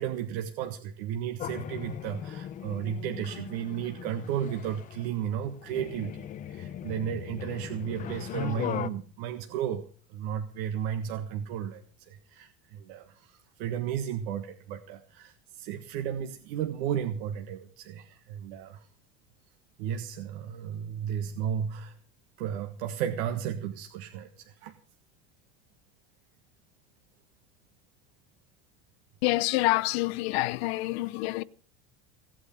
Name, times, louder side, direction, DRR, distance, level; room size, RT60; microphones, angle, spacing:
voice 1, 0.0-18.9 19.8-22.0 22.4-24.7, right 9 dB, 70° right, 1.6 m, -34 dB
sound 1, 1.4-8.9, left 10 dB, 25° left, 0.7 m, -38 dB
voice 2, 29.2-31.4, left 20 dB, 80° left, 0.8 m, -27 dB
17.5 x 8.9 x 6.8 m
cardioid pair, 165°, 31 cm